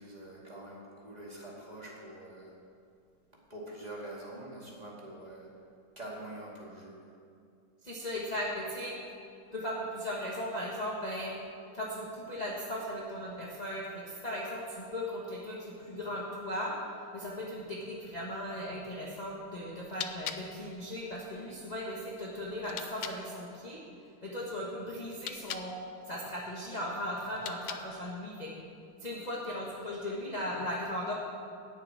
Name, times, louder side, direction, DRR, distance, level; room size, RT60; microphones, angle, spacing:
voice 1, 0.0-2.5 3.5-5.5 6.0-7.1, right 1 dB, 20° right, -4 dB, 2.2 m, -45 dB
voice 2, 7.8-9.0 9.5-11.3 11.7-16.7 17.1-23.8 24.2-25.8 26.1-28.5 29.0-31.1, left 1 dB, 25° left, -4 dB, 1.2 m, -37 dB
sound 1, 19.7-23.2 25.0-25.7 27.2-28.1, left 8 dB, 75° left, 0.7 m, -43 dB
10.5 x 6.8 x 8.8 m, 2.3 s
omnidirectional pair, 2.1 m